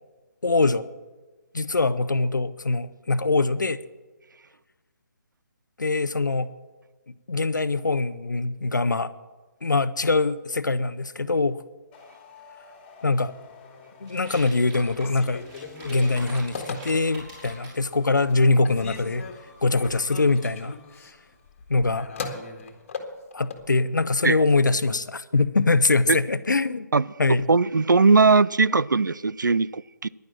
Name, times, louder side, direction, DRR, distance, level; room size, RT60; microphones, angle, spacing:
voice 1, 0.4-0.9 1.5-3.8 5.8-6.5 7.3-9.1 9.6-11.6 13.0-13.3 14.0-15.4 15.8-19.3 19.6-20.8 21.7-22.1 23.3-26.9 27.2-27.5, left 3 dB, 75° left, 15 dB, 0.8 m, -23 dB
sound 1, 11.9-21.6, left 4 dB, 15° left, 2.5 m, -51 dB
sound 2, 14.1-17.8, right 2 dB, 25° right, 5.9 m, -44 dB
Telephone, 14.9-17.4 17.9-18.4 18.6-23.7, left 4 dB, 40° left, 1.7 m, -38 dB
voice 2, 27.5-30.1, right 4 dB, 80° right, 20 dB, 0.4 m, -19 dB
11.0 x 10.5 x 7.5 m, 1.2 s
figure-of-eight pair, 145°, 10 cm